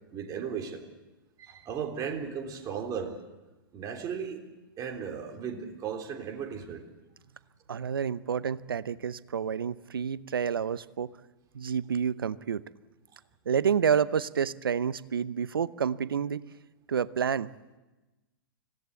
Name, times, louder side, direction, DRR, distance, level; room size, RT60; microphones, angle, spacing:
voice 1, 0.1-0.8 1.4-3.2 3.7-4.4 4.8-6.8, right 7 dB, 30° right, 2 dB, 3.6 m, -36 dB
voice 2, 7.7-11.1 11.5-12.6 13.5-16.4 16.9-17.5, right 7 dB, 75° right, 17 dB, 0.8 m, -29 dB
25.5 x 17.5 x 8.4 m, 1.1 s
figure-of-eight pair, 105°, 12 cm